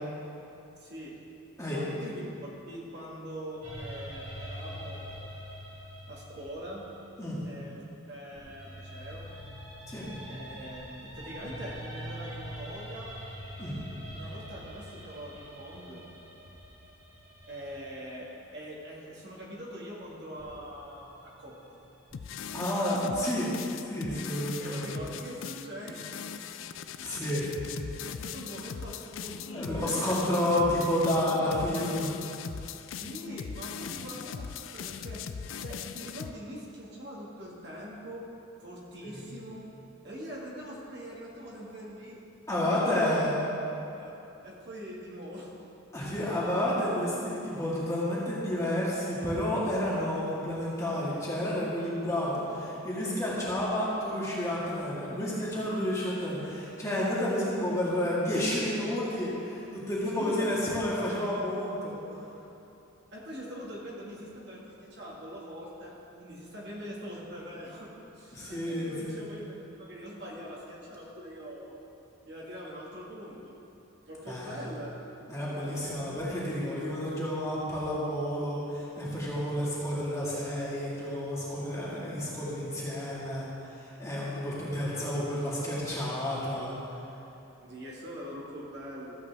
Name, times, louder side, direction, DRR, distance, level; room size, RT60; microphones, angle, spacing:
voice 1, 0.8-1.1 1.7-5.2 6.1-6.9 7.5-7.8 8.1-9.3 10.3-13.1 14.1-16.0 17.4-18.3 18.5-21.8 24.6-26.4 27.2-27.3 28.1-30.2 32.9-35.2 35.6-38.2 38.6-39.6 40.0-42.2 42.5-43.1 44.0-44.1 44.4-45.5 60.1-60.5 63.1-71.9 72.3-73.6 74.1-76.0 87.6-89.2, equal, 55° right, -5 dB, 1.9 m, -43 dB
sound 1, 3.6-7.8 8.4-18.4 20.4-22.3, equal, 30° right, 2.1 m, -44 dB
sound 2, 22.1-36.3, left 7 dB, 75° left, 0.4 m, -40 dB
voice 2, 22.5-25.0 27.0-27.5 29.5-32.2 34.0-34.1 39.0-39.2 42.5-43.4 45.9-62.2 68.3-69.2 74.3-74.6 75.3-83.5 83.8-86.8, left 1 dB, 15° left, -7 dB, 1.9 m, -30 dB
14.0 x 8.1 x 3.5 m, 2.9 s
head